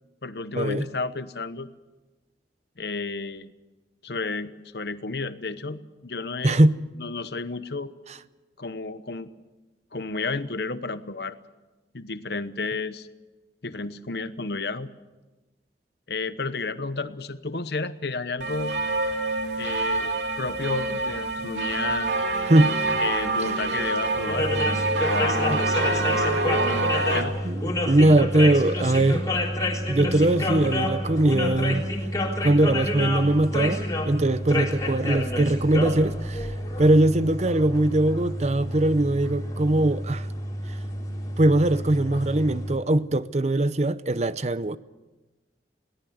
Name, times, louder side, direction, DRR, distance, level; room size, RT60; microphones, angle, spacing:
voice 1, 0.2-1.7 2.8-3.5 4.0-6.6 7.0-7.9 8.6-9.3 9.9-11.4 11.9-13.1 13.6-14.9 16.1-18.7 19.6-22.2 23.0-27.4, left 3 dB, 60° left, 1.0 m, -32 dB
voice 2, 6.4-6.8 22.5-22.8 23.4-23.5 25.5-25.6 27.4-29.2 29.9-31.8 32.4-40.3 40.7-40.8 41.4-44.8, right 1 dB, 40° right, 0.7 m, -21 dB
sound 1, 18.4-27.2, right 2 dB, 80° right, 2.6 m, -26 dB
sound 2, 24.3-42.8, left 1 dB, 20° left, 3.5 m, -29 dB
22.0 x 18.0 x 8.0 m
head